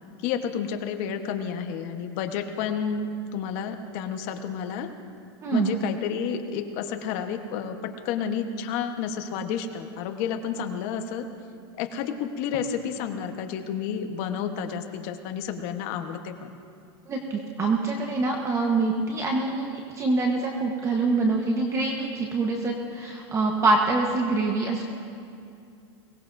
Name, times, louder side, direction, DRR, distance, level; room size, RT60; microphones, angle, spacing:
voice 1, 0.2-4.9 5.5-11.3 11.8-16.5, left 7 dB, 45° left, 6 dB, 1.2 m, -30 dB
voice 2, 5.4-5.7 17.1-24.8, right 3 dB, 20° right, 1 dB, 1.2 m, -25 dB
22.5 x 18.0 x 2.7 m, 2.5 s
supercardioid pair, 150°, 14 cm